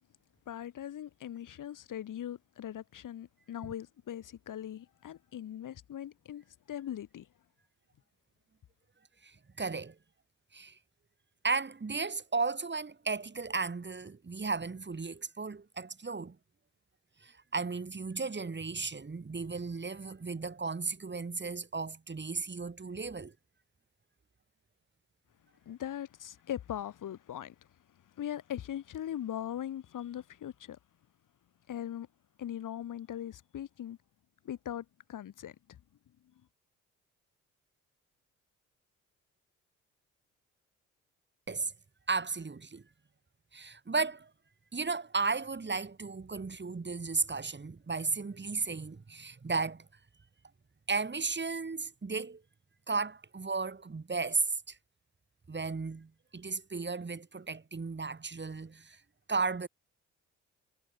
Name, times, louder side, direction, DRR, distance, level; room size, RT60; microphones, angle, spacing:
voice 1, 0.5-7.3 25.7-27.6 28.1-30.8 31.7-32.1 32.4-34.0 34.4-35.8, left 10 dB, 60° left, 4.3 m, -40 dB
voice 2, 9.2-9.9 10.5-10.8 11.4-16.4 17.2-23.3 41.5-41.7 42.1-42.8 43.5-44.3 44.7-49.8 50.9-52.4 52.9-54.8 55.5-59.0 59.3-59.7, right 4 dB, 30° right, 4.9 m, -34 dB
hypercardioid pair, 45°, 35 cm